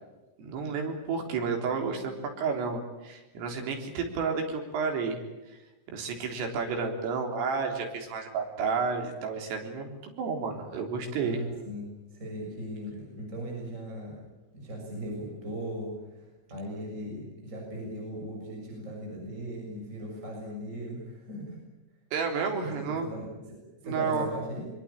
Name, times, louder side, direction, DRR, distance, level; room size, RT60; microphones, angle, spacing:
voice 1, 0.4-5.2 5.5-5.6 5.9-11.4 22.1-23.1 23.8-24.3, right 5 dB, 80° right, 3 dB, 6.2 m, -31 dB
voice 2, 11.2-14.2 14.5-21.6 22.6-23.6 23.8-24.7, equal, 15° right, -1 dB, 6.8 m, -38 dB
24.0 x 22.5 x 8.7 m, 1.1 s
omnidirectional pair, 5.8 m